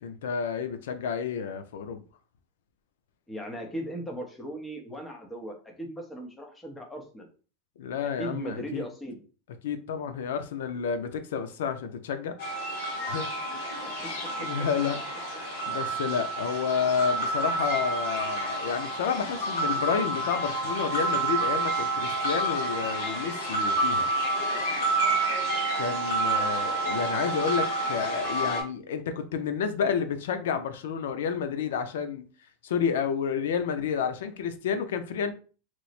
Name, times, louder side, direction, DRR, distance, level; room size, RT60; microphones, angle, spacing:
voice 1, 0.0-2.0 7.8-8.9 9.6-12.4 13.1-13.3 13.9-14.1 14.4-15.0 15.3-24.1 25.8-32.3 32.6-35.3, left 7 dB, 90° left, 0.4 m, -30 dB
voice 2, 3.3-7.3 8.2-9.2 13.8-14.5 26.3-26.7, right 1 dB, 10° left, 0.7 m, -38 dB
sound 1, 12.4-28.6, right 2 dB, 60° left, 1.8 m, -29 dB
3.0 x 2.0 x 4.0 m
supercardioid pair, 165°, 0 cm